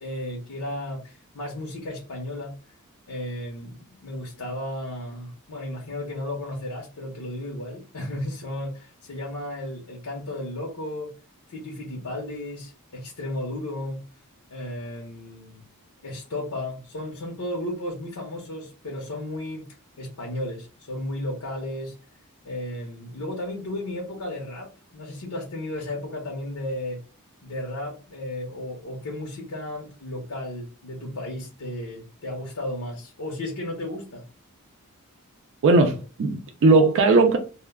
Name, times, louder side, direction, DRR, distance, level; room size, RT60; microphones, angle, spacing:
voice 1, 0.0-2.5 3.1-11.1 11.5-14.0 14.5-15.6 16.0-19.7 20.0-21.9 22.4-27.0 27.4-34.2, left 1 dB, 80° left, 0.7 m, -34 dB
voice 2, 35.6-37.4, right 3 dB, 55° right, 0.4 m, -18 dB
2.2 x 2.1 x 3.3 m
head